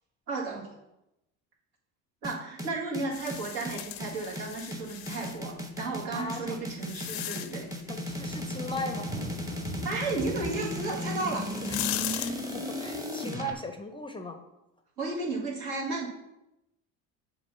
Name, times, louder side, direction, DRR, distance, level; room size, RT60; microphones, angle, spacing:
voice 1, 0.3-0.7 2.2-7.7 9.8-11.5 15.0-16.1, right 3 dB, 70° right, -3 dB, 1.9 m, -33 dB
sound 1, 2.2-13.5, left 1 dB, 10° right, 0.9 m, -36 dB
sound 2, 3.1-5.4 6.2-7.8 10.8-10.9 11.4-12.3, left 15 dB, 60° left, 0.5 m, -37 dB
voice 2, 6.1-6.6 7.9-9.1 11.6-11.8 12.1-14.4, left 1 dB, 10° left, 5 dB, 0.6 m, -38 dB
sound 3, 8.1-13.1, right 1 dB, 25° right, 1.8 m, -43 dB
7.3 x 2.8 x 5.6 m, 0.90 s
supercardioid pair, 75°, 41 cm